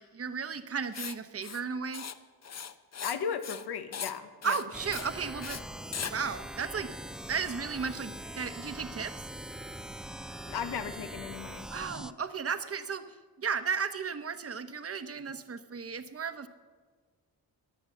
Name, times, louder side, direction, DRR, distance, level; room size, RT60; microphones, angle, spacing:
voice 1, 0.0-2.1 4.4-5.6 6.1-6.9 7.3-9.3 11.7-13.0 13.4-16.5, right 6 dB, 35° right, 10 dB, 0.9 m, -34 dB
Writing, 0.9-1.1 1.4-1.6 1.9-2.1 2.4-3.2 3.4-3.7 3.9-4.1 4.4-4.6 4.9-5.1 5.4-5.6 5.9-6.1, left 7 dB, 45° left, 0.8 m, -38 dB
voice 2, 3.0-4.6 10.5-11.7, left 7 dB, 85° left, 9 dB, 1.2 m, -36 dB
sound 1, 4.7-12.1, right 1 dB, ahead, 0.3 m, -42 dB
15.0 x 10.0 x 6.8 m, 1.5 s
cardioid pair, 85°, 38 cm